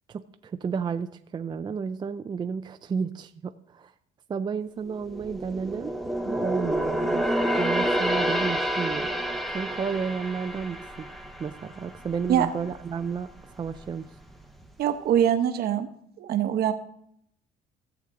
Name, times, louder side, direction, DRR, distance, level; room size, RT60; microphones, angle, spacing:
voice 1, 0.1-3.9 4.3-5.9 6.2-9.1 9.5-11.1 11.4-13.3 13.5-14.1, right 6 dB, 25° right, 8 dB, 0.5 m, -32 dB
sound 1, 4.9-12.4 12.8-13.0 13.6-14.3 14.6-14.7, right 1 dB, ahead, 1.0 m, -28 dB
voice 2, 14.8-15.9 16.2-16.7, right 10 dB, 65° right, 9 dB, 1.0 m, -23 dB
16.0 x 7.2 x 3.8 m, 0.72 s
cardioid pair, 110°, 17 cm